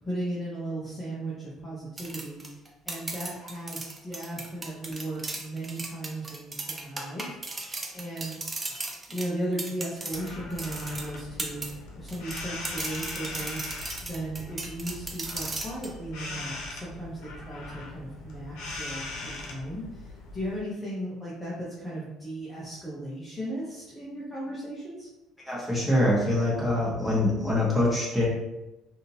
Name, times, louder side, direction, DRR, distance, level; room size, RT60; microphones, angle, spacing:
voice 1, 0.0-2.4 2.8-7.4 7.9-8.4 9.1-25.1, right 1 dB, 15° left, -8 dB, 0.8 m, -36 dB
sound 1, 2.0-11.7 12.1-15.9, right 2 dB, 20° right, 0.4 m, -37 dB
Squeaky Door, 10.1-20.6, left 2 dB, 85° left, 0.8 m, -40 dB
voice 2, 25.4-28.3, left 1 dB, ahead, -8 dB, 1.4 m, -24 dB
3.5 x 2.7 x 2.8 m, 0.98 s
cardioid pair, 130°, 0 cm